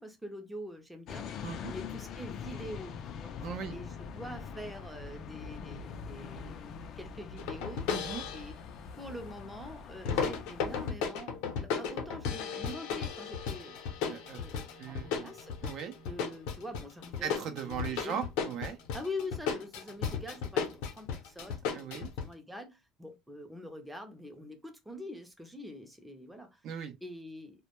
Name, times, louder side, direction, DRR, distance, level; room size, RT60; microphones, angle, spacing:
voice 1, 0.0-3.3 3.7-7.9 8.3-8.6 9.0-13.8 14.3-15.5 16.0-18.2 18.9-21.6 21.9-27.6, left 1 dB, 5° right, 0.5 m, -45 dB
sound 1, 1.1-10.9, left 6 dB, 50° left, 0.3 m, -43 dB
voice 2, 1.4-1.7 3.4-3.8 7.9-8.2 14.1-14.4 14.7-15.3 15.6-15.9 17.2-18.8 21.7-22.1 26.6-26.9, right 7 dB, 55° right, 0.5 m, -38 dB
sound 2, 7.4-8.5 10.0-22.3, left 6 dB, 85° left, 0.7 m, -35 dB
2.2 x 2.1 x 2.9 m
cardioid pair, 135°, 0 cm